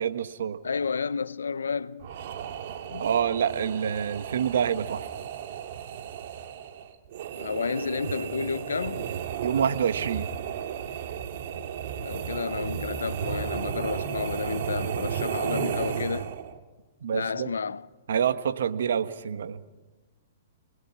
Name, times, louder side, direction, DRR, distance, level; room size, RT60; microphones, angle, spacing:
voice 1, 0.0-0.6 3.0-5.1 9.4-10.3 17.0-17.5 18.1-19.6, right 8 dB, 75° right, 1.5 m, -27 dB
voice 2, 0.6-2.1 2.9-3.1 7.4-9.1 12.0-16.3 17.1-17.9, left 5 dB, 90° left, 0.6 m, -31 dB
sound 1, 2.0-16.6, right 8 dB, 60° right, 2.2 m, -34 dB
29.0 x 21.0 x 6.0 m
hypercardioid pair, 130°, 0 cm